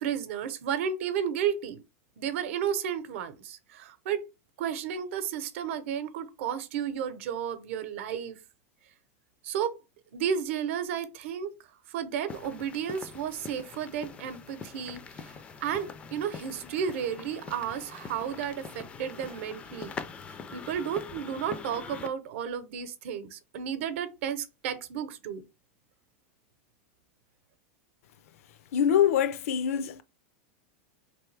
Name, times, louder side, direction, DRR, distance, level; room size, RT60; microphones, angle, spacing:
voice 1, 0.0-1.8 2.2-4.2 4.6-8.4 9.4-9.7 10.1-11.5 11.9-19.9 20.3-25.4, right 8 dB, 60° right, 0.8 m, -33 dB
sound 1, 12.3-22.1, left 5 dB, 15° left, 0.3 m, -43 dB
voice 2, 28.7-30.0, left 9 dB, 75° left, 0.5 m, -24 dB
3.9 x 3.3 x 3.3 m
supercardioid pair, 165°, 8 cm